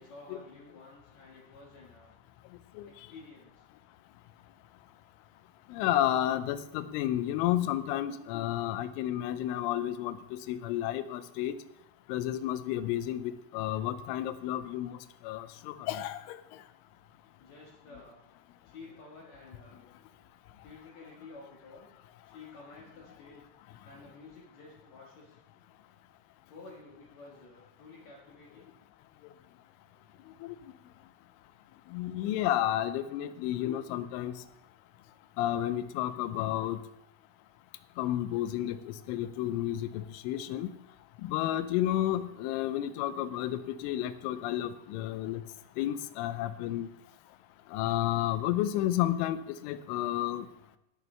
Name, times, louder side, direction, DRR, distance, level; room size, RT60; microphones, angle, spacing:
voice 1, 0.0-2.2 2.9-3.7 17.4-18.2 18.6-19.8 20.6-21.9 22.2-23.5 23.8-25.4 26.5-28.7, left 3 dB, 60° left, -3 dB, 1.8 m, -51 dB
voice 2, 5.7-11.6 12.1-15.0 15.2-16.4 30.4-30.6 31.9-34.4 35.4-36.8 38.0-40.7 41.2-45.4 45.8-46.9 47.7-50.5, left 12 dB, 90° left, 13 dB, 3.1 m, -31 dB
19.5 x 6.9 x 3.3 m, 0.83 s
omnidirectional pair, 5.5 m